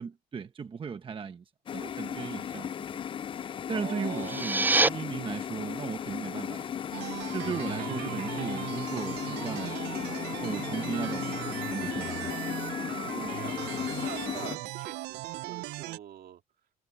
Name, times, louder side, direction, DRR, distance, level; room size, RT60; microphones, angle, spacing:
voice 1, 0.0-1.4 1.7-3.0 3.7-6.7 7.3-10.1 10.4-12.4 14.6-14.7, right 6 dB, 30° right, 1.1 m, -37 dB
sound 1, 1.7-14.6, left 9 dB, 30° left, 0.3 m, -35 dB
voice 2, 3.7-4.9 13.2-16.4, right 11 dB, 60° right, 2.2 m, -45 dB
sound 2, 4.1-4.9, right 2 dB, 10° right, 0.6 m, -25 dB
sound 3, 6.9-16.0, right 20 dB, 85° right, 0.4 m, -38 dB
cardioid pair, 110°, 17 cm